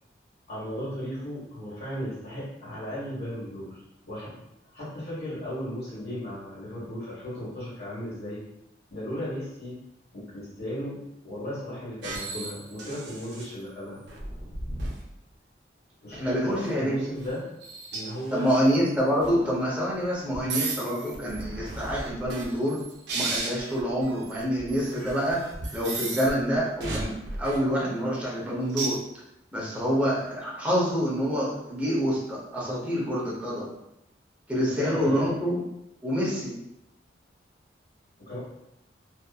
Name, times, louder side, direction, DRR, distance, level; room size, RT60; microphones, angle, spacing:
voice 1, 0.5-4.4 4.7-8.4 8.9-9.8 10.1-14.0 16.0-17.5 17.9-18.5 34.6-35.3 38.3-38.4, equal, 60° left, -9 dB, 1.3 m, -36 dB
sound 1, 12.0-13.4 14.1-15.1 16.1-16.7 17.2-17.3 17.6-18.6 19.2-19.4 20.3-26.3 26.8-27.6 28.7-29.0, right 2 dB, 65° right, 0.5 m, -35 dB
voice 2, 16.1-17.0 18.3-22.8 23.1-25.4 25.7-29.0 29.5-33.7 34.5-35.6 36.0-36.6, equal, 10° right, -6 dB, 0.6 m, -27 dB
2.7 x 2.5 x 2.3 m, 0.86 s
head